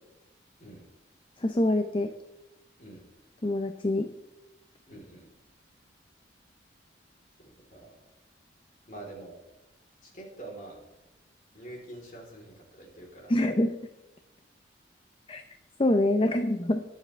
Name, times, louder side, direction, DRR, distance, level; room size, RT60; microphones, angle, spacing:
voice 1, 1.4-2.1 3.4-4.1 13.3-13.8 15.3-15.4 15.8-16.8, left 1 dB, 30° left, 7 dB, 0.6 m, -25 dB
voice 2, 4.9-5.3 7.4-8.0 8.9-9.4 10.0-10.8 11.5-13.3, right 2 dB, 45° left, 0 dB, 3.7 m, -45 dB
22.0 x 7.6 x 3.3 m, 0.97 s
head